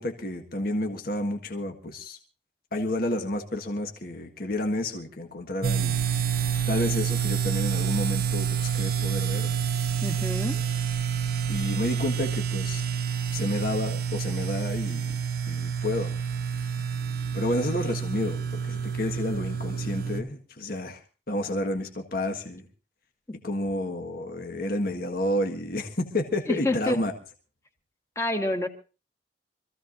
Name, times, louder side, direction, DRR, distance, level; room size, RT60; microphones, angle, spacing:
voice 1, 0.0-2.2 2.7-6.0 6.7-9.6 11.5-12.9 13.3-15.2 15.5-16.2 17.3-21.0 21.3-22.6 23.4-27.1, left 1 dB, 55° left, 4 dB, 1.6 m, -30 dB
sound 1, 5.6-20.2, right 7 dB, 60° right, 1.0 m, -28 dB
voice 2, 10.0-10.6 23.3-23.4 26.5-27.0 28.1-28.7, left 2 dB, 15° left, 5 dB, 1.7 m, -28 dB
26.0 x 15.0 x 2.6 m, 0.33 s
head